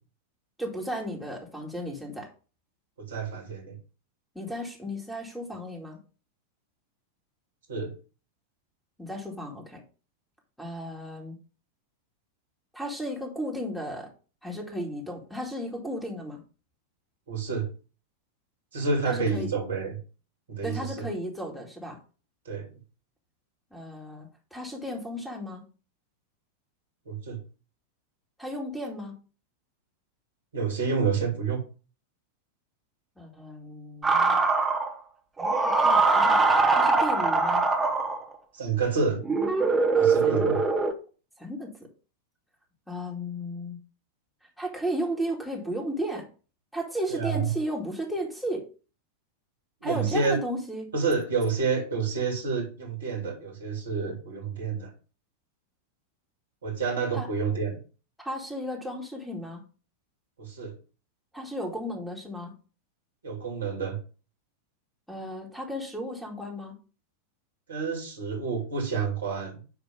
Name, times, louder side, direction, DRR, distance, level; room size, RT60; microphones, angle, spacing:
voice 1, 0.6-2.3 4.3-6.0 9.0-9.8 10.6-11.3 12.7-14.1 14.4-16.4 19.1-19.5 20.6-22.0 23.7-25.6 28.4-29.2 33.2-34.4 35.4-36.4 36.7-37.6 39.9-40.5 41.4-41.9 42.9-43.8 44.6-46.3 46.7-48.6 49.8-50.9 57.1-57.3 58.2-59.6 61.3-62.5 65.1-66.8, equal, ahead, 0 dB, 2.2 m, -34 dB
voice 2, 3.0-3.8 7.7-7.9 17.3-17.7 18.7-19.9 20.5-21.1 22.4-22.7 27.1-27.4 30.5-31.6 38.5-39.2 40.0-40.6 47.1-47.4 49.8-50.4 50.9-54.9 56.6-57.8 60.4-60.7 63.2-64.0 67.7-69.6, right 4 dB, 70° right, 2 dB, 2.8 m, -29 dB
sound 1, 34.0-34.9 35.4-38.3 39.2-40.9, right 3 dB, 15° right, 1.4 m, -22 dB
9.8 x 3.4 x 5.2 m, 0.36 s
figure-of-eight pair, 90°, 0 cm